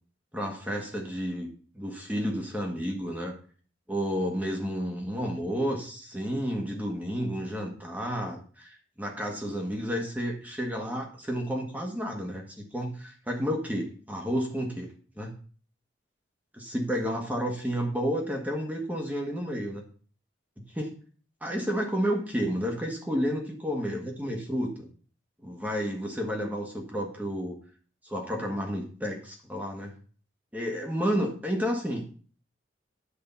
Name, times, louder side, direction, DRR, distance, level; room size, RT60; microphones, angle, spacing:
voice 1, 0.3-1.5 1.7-3.3 3.9-14.9 15.2-15.3 16.6-19.8 20.7-21.0 21.4-24.9 25.4-27.6 28.0-29.9 30.5-32.0, equal, 10° right, 1 dB, 1.6 m, -31 dB
9.7 x 5.0 x 7.0 m, 0.42 s
head